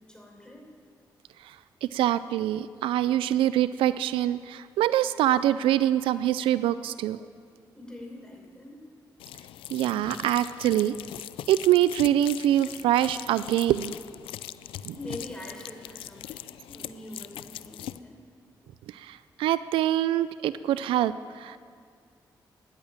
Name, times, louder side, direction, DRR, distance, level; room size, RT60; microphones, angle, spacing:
voice 1, 0.1-0.7 7.7-8.8 15.0-18.2, left 1 dB, 10° left, 0 dB, 5.3 m, -43 dB
voice 2, 1.8-7.2 9.7-10.9 11.5-14.0 14.8-15.0 18.9-21.6, right 12 dB, 90° right, 15 dB, 0.4 m, -24 dB
sound 1, 9.2-18.0, left 13 dB, 85° left, 0.4 m, -41 dB
14.0 x 10.5 x 8.9 m, 2.1 s
supercardioid pair, 45°, 9 cm